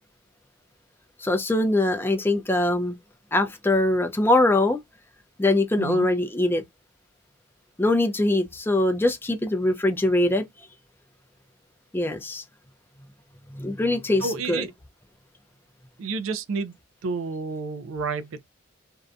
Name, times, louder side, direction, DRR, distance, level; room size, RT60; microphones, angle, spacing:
voice 1, 1.2-3.0 3.3-4.8 5.4-6.6 7.8-10.5 11.9-12.4 13.5-14.6, left 2 dB, 10° left, 0.4 m, -22 dB
voice 2, 14.2-14.7 16.0-16.7 17.0-18.4, right 4 dB, 90° right, 0.4 m, -30 dB
2.6 x 2.1 x 2.4 m
head